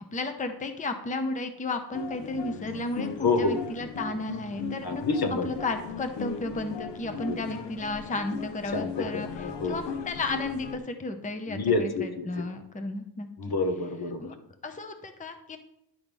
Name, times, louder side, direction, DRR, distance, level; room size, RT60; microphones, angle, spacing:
voice 1, 0.1-5.0 5.4-13.3 14.2-14.3 14.6-15.6, left 2 dB, 20° left, 7 dB, 0.7 m, -33 dB
sound 1, 1.9-10.8, left 5 dB, 85° left, 0.9 m, -38 dB
voice 2, 3.2-3.6 4.8-5.5 7.3-7.4 8.7-9.8 11.5-12.3 13.4-14.3, left 3 dB, 60° left, 6 dB, 1.1 m, -28 dB
10.0 x 3.6 x 6.1 m, 0.79 s
wide cardioid pair, 115°, 42 cm